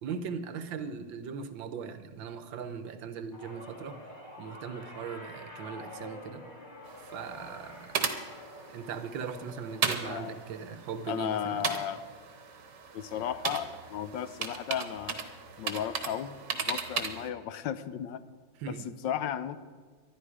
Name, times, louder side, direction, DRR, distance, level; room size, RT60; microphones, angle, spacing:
voice 1, 0.0-4.0 4.4-6.5 7.0-8.0 8.7-11.8 18.6-18.9, right 6 dB, 90° right, 10 dB, 1.7 m, -39 dB
sound 1, 3.3-13.8 14.1-14.5 15.6-15.7, left 1 dB, 25° left, 2.4 m, -49 dB
sound 2, 6.9-17.3, right 6 dB, 65° right, 1.8 m, -37 dB
voice 2, 10.0-10.4 11.1-12.0 12.9-15.2 15.6-18.2 18.8-19.6, left 9 dB, 80° left, 13 dB, 1.4 m, -35 dB
19.5 x 12.0 x 4.9 m, 1.5 s
omnidirectional pair, 2.0 m